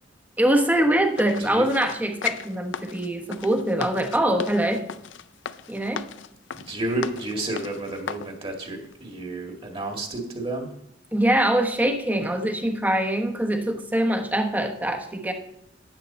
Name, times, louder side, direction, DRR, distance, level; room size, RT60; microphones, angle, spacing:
voice 1, 0.4-4.8 5.7-6.1 11.1-15.3, right 1 dB, 10° right, 5 dB, 1.1 m, -23 dB
sound 1, 1.2-8.3 8.8-8.9, left 7 dB, 70° left, 0.5 m, -36 dB
voice 2, 6.5-10.7, right 2 dB, 30° right, 3 dB, 1.8 m, -31 dB
12.5 x 9.2 x 4.2 m, 0.77 s
head